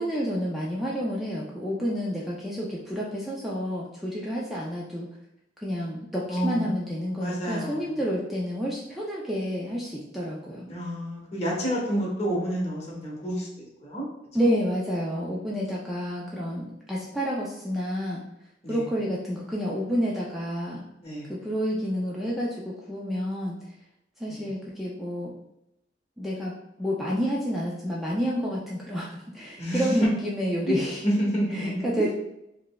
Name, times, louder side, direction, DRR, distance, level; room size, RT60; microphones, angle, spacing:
voice 1, 0.0-5.1 5.6-10.7 14.3-18.2 18.7-20.8 21.3-23.6 24.2-25.3 26.2-29.1 29.3-31.0 31.5-32.1, equal, ahead, -6 dB, 0.4 m, -29 dB
voice 2, 6.3-6.8 7.1-8.0 10.7-14.0 18.6-18.8 21.0-21.3 24.3-24.5 29.6-30.1 30.7-30.8 31.0-32.1, equal, 35° left, -4 dB, 1.0 m, -29 dB
4.7 x 2.1 x 2.2 m, 0.84 s
head